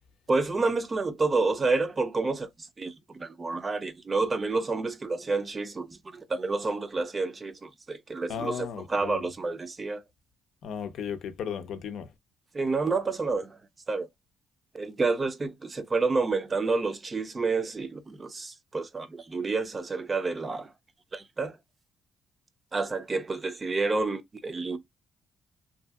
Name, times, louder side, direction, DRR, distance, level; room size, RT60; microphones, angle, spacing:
voice 1, 0.3-10.0 12.5-13.6 13.9-14.1 14.7-20.7 21.1-21.6 22.7-24.8, right 3 dB, 30° right, 0.5 m, -29 dB
voice 2, 8.3-9.3 10.6-12.1, left 7 dB, 75° left, 0.5 m, -35 dB
2.6 x 2.6 x 2.3 m
cardioid pair, 90°, 0 cm